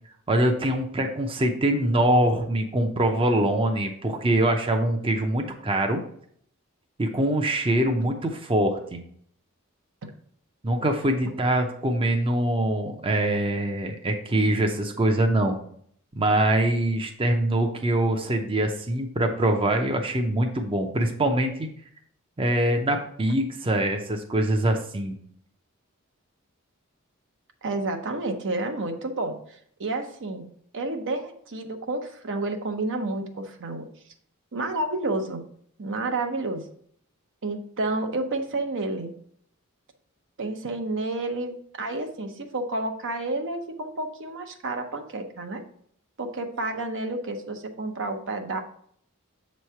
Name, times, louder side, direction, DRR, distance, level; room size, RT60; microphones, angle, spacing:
voice 1, 0.3-6.0 7.0-9.0 10.6-15.6 16.1-21.7 22.4-25.2, right 1 dB, 25° right, 4 dB, 0.6 m, -24 dB
voice 2, 27.6-30.4 30.7-33.9 34.5-35.4 35.8-36.7 37.4-39.1 40.4-45.6 46.2-48.6, right 2 dB, 60° right, 6 dB, 0.8 m, -30 dB
7.2 x 3.1 x 5.6 m, 0.63 s
head